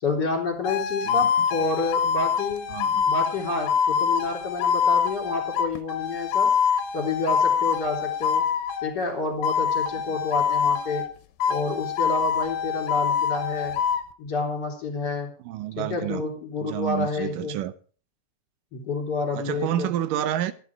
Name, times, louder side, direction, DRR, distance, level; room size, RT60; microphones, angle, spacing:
voice 1, 0.0-2.6 3.1-6.5 6.9-8.5 8.8-11.0 11.5-13.8 14.2-15.3 15.8-17.6 18.7-19.9, left 3 dB, 30° left, 3.9 m, -29 dB
sound 1, 0.6-8.9 9.4-11.1 11.4-14.0, left 7 dB, 80° left, 2.8 m, -25 dB
voice 2, 2.7-3.1 15.5-16.2 16.6-17.7 19.4-20.5, right 12 dB, 75° right, 2.2 m, -29 dB
14.5 x 10.5 x 4.8 m
omnidirectional pair, 4.3 m